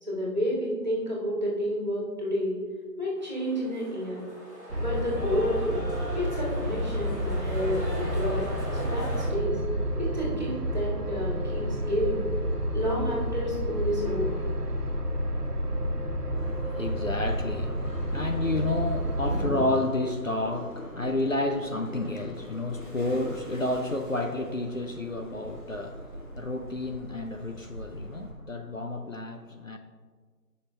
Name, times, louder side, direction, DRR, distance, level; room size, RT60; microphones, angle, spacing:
voice 1, 0.0-2.6 3.0-4.2 4.8-5.8 6.1-9.6 9.9-12.2 12.7-14.4, equal, 25° right, 2.0 m, -30 dB
sound 1, 3.2-9.3, equal, 10° right, 2.0 m, -40 dB
sound 2, 4.7-19.5, equal, 65° right, 1.3 m, -30 dB
voice 2, 16.3-29.8, left 2 dB, 50° left, 0.7 m, -30 dB
sound 3, 17.1-28.3, equal, 30° left, 1.4 m, -45 dB
15.5 x 5.8 x 3.2 m
figure-of-eight pair, 180°, 50 cm